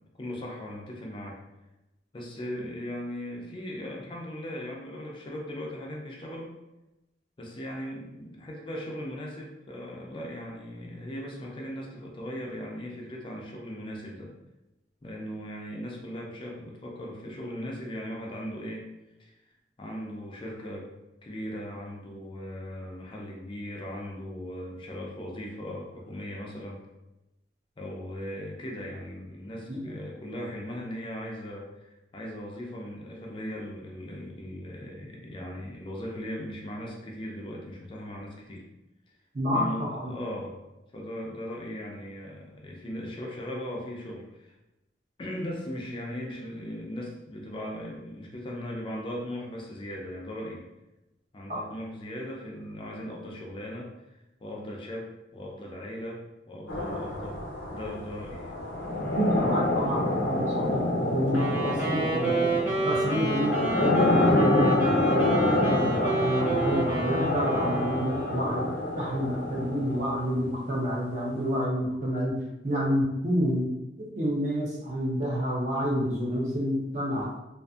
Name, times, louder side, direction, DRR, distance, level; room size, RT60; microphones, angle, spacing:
voice 1, 0.2-1.4 2.1-6.6 7.4-14.3 15.0-18.9 19.2-19.3 19.8-20.9 21.2-26.8 27.8-38.6 39.5-40.5 40.9-44.6 45.2-50.7 51.3-56.2 56.5-57.4 57.7-58.6, equal, 30° left, -1 dB, 0.4 m, -38 dB
voice 2, 39.3-39.7 39.9-40.1 51.5-51.6 59.1-62.5 62.8-68.6 68.9-72.3 72.6-73.7 74.1-77.3, equal, 40° right, -4 dB, 0.7 m, -29 dB
sound 1, 56.7-70.5, left 1 dB, 80° left, 0.6 m, -27 dB
Wind instrument woodwind instrument, 61.3-68.5, right 2 dB, 15° right, 0.9 m, -30 dB
2.5 x 2.5 x 2.3 m, 0.97 s
head